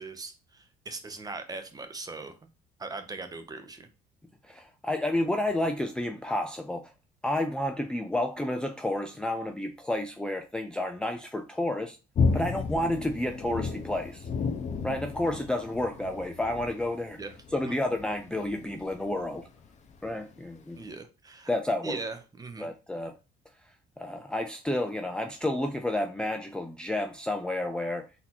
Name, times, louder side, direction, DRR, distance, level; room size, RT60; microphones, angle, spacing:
voice 1, 0.0-2.4 2.8-3.9 12.3-12.6 17.2-17.3 17.7-17.8 20.8-21.5 21.8-22.7, right 3 dB, 20° right, 0.8 m, -40 dB
voice 2, 4.4-6.9 7.2-12.0 12.3-14.3 14.8-17.2 17.5-19.5 20.0-20.9 21.5-22.0 22.6-23.1 23.7-28.0, left 1 dB, 5° left, 0.4 m, -30 dB
sound 1, 12.1-20.5 20.7-20.9, left 4 dB, 45° left, 0.8 m, -33 dB
4.1 x 2.9 x 4.1 m
cardioid pair, 110°, 17 cm